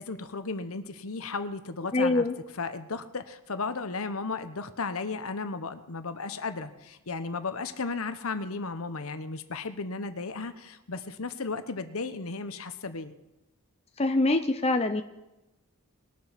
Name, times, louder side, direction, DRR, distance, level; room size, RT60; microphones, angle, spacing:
voice 1, 0.0-2.2 2.6-13.1, left 4 dB, 70° left, 10 dB, 1.0 m, -35 dB
voice 2, 1.9-2.3 14.0-15.0, left 2 dB, 25° left, 6 dB, 0.7 m, -24 dB
20.5 x 7.5 x 5.9 m, 0.97 s
head